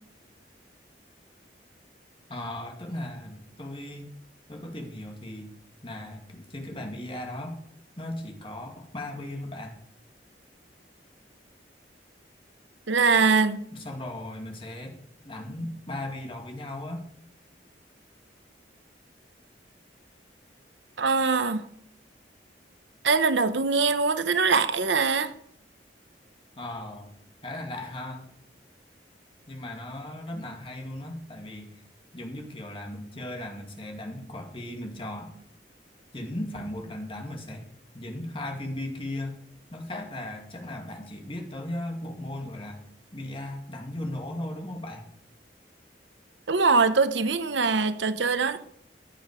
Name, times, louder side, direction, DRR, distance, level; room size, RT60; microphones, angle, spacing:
voice 1, 2.3-4.0 4.5-5.5 5.8-7.6 8.0-9.8 13.7-15.0 15.2-17.0 26.6-27.2 27.4-28.3 29.5-31.8 32.1-35.3 36.1-37.6 37.9-39.4 39.7-42.8 43.1-45.1, left 1 dB, 30° left, 2 dB, 2.3 m, -37 dB
voice 2, 12.9-13.6 21.0-21.7 23.0-25.3 46.5-48.6, right 4 dB, 85° right, 12 dB, 0.9 m, -23 dB
14.5 x 10.0 x 5.0 m, 0.70 s
head